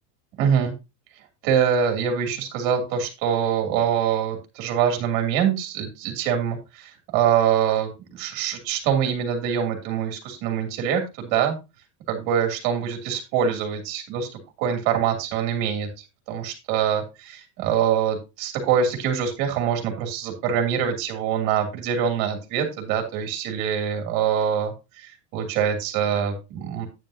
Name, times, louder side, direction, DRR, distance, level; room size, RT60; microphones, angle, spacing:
voice 1, 0.4-0.7 1.4-11.6 12.1-14.3 14.6-15.9 16.3-26.9, right 8 dB, 40° right, 4 dB, 2.9 m, -24 dB
9.4 x 9.2 x 2.8 m, 0.26 s
supercardioid pair, 170°, 49 cm